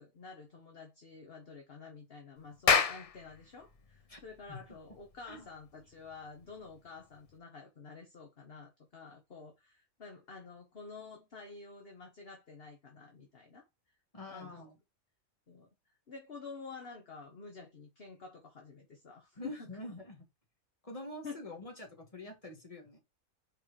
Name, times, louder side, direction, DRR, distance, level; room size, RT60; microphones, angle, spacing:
voice 1, 0.0-13.6 14.3-14.7 15.5-19.9 21.2-21.5, left 4 dB, 45° left, 1.5 m, -50 dB
Clapping, 2.4-7.3, left 6 dB, 70° left, 0.3 m, -33 dB
voice 2, 14.1-14.7 19.4-20.2 20.8-23.0, left 1 dB, 25° left, 2.3 m, -46 dB
5.3 x 4.7 x 4.6 m
omnidirectional pair, 1.5 m